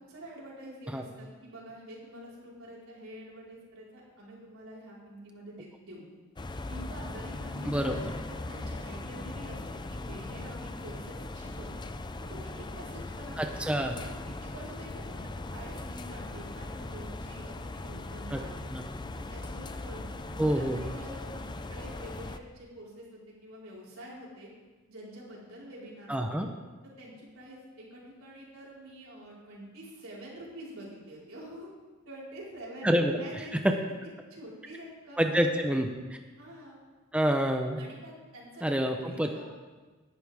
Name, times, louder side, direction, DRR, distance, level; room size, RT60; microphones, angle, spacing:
voice 1, 0.1-6.0 6.7-8.0 8.3-11.8 12.2-13.4 14.0-18.7 19.2-24.5 24.9-26.5 27.0-31.7 32.0-33.6 34.3-35.6 36.4-36.8 37.8-38.6 38.9-39.5, right 1 dB, 85° right, -5 dB, 4.6 m, -47 dB
sound 1, 6.4-22.4, left 2 dB, 20° left, 0.5 m, -39 dB
voice 2, 7.7-8.0 13.4-14.0 18.3-18.4 18.7-18.8 20.4-20.8 26.1-26.5 32.8-33.2 33.6-33.7 35.2-35.9 37.1-37.8 38.6-39.3, equal, 5° right, 4 dB, 0.8 m, -27 dB
18.0 x 11.5 x 3.6 m, 1.3 s
head